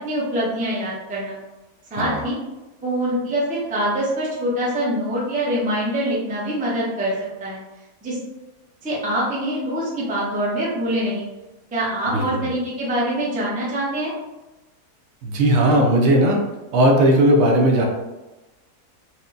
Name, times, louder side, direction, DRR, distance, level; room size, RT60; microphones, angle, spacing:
voice 1, 0.0-1.4 1.9-2.4 2.8-7.1 7.4-7.6 8.0-8.2 8.8-11.2 11.7-14.1, right 1 dB, 10° right, -6 dB, 0.4 m, -24 dB
voice 2, 1.9-2.2 12.1-12.5 15.2-16.4 16.7-17.9, right 1 dB, 70° right, 1 dB, 1.0 m, -17 dB
4.3 x 2.1 x 2.6 m, 1.1 s
omnidirectional pair, 1.5 m